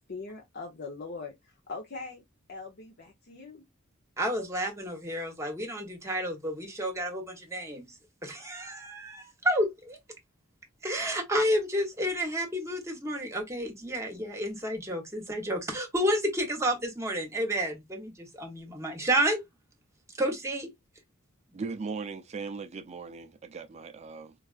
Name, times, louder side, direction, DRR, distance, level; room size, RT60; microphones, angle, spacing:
voice 1, 0.1-2.2 2.5-3.6, left 4 dB, 50° left, 0.7 m, -41 dB
voice 2, 4.2-10.0 10.8-19.4 20.1-20.7, equal, 15° right, 1.0 m, -30 dB
voice 3, 21.5-24.3, right 4 dB, 30° right, 0.4 m, -38 dB
4.6 x 2.4 x 2.4 m
head